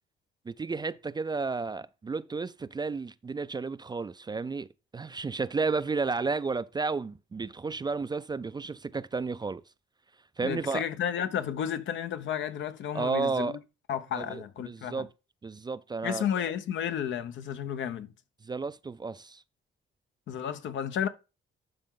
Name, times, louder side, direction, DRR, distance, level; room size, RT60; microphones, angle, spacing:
voice 1, 0.5-4.7 4.9-9.6 10.4-10.9 12.9-13.6 14.1-15.1 15.4-16.2 18.4-19.4, right 4 dB, 20° right, 0.4 m, -32 dB
voice 2, 10.4-13.6 13.9-15.1 16.0-18.1 20.3-21.1, left 9 dB, 70° left, 0.8 m, -32 dB
12.0 x 4.5 x 3.8 m
cardioid pair, 90°, 20 cm